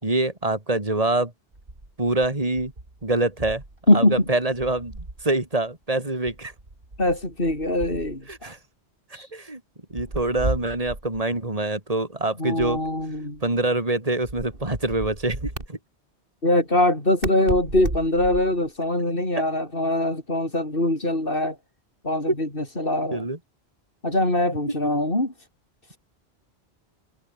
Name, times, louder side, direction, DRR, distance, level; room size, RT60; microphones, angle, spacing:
voice 1, 0.0-1.3 2.0-2.7 3.0-3.6 3.9-6.5 8.3-8.6 9.2-9.6 9.9-12.8 13.4-15.8 23.1-23.4, right 2 dB, 35° right, 3.7 m, -25 dB
sound 1, 1.5-3.8 4.1-5.3 6.2-8.4 9.9-11.3 12.6-13.6 14.2-15.7 17.2-18.7, right 2 dB, 60° right, 4.6 m, -35 dB
voice 2, 7.0-8.5 9.1-9.3 12.4-13.4 16.4-21.6 22.0-23.3 24.0-25.3 25.9-26.0, left 1 dB, 55° left, 6.3 m, -23 dB
omnidirectional pair, 1.1 m